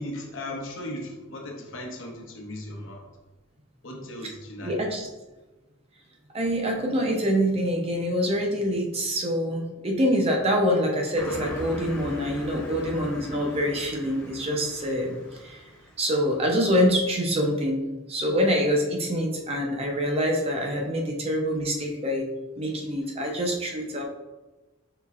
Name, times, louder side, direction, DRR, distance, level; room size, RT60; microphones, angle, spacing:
voice 1, 0.0-3.0 3.8-4.9, left 1 dB, 65° left, 0 dB, 0.8 m, -37 dB
voice 2, 4.6-5.1 6.3-15.6 16.0-17.8 18.1-22.3 22.6-24.0, equal, 30° right, 0 dB, 0.6 m, -25 dB
Car passing by, 11.2-16.1, left 1 dB, 10° left, 0.9 m, -39 dB
5.6 x 3.3 x 2.4 m, 1.1 s
head